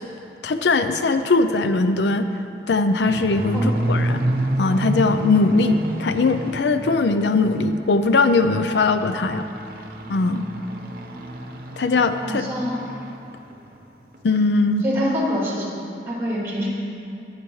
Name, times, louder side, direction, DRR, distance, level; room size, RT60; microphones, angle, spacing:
voice 1, 0.4-2.3 2.7-4.2 4.6-9.5 10.1-10.5 11.8-12.5 14.2-14.8, left 3 dB, 75° left, 9 dB, 0.5 m, -20 dB
sound 1, 3.0-7.6 8.0-13.2 13.5-13.8 14.1-14.2 14.6-14.7, right 1 dB, 50° right, 1.0 m, -29 dB
voice 2, 12.2-12.8 14.8-15.7 16.1-16.7, equal, 15° right, -5 dB, 3.0 m, -25 dB
19.0 x 9.7 x 3.2 m, 2.6 s
head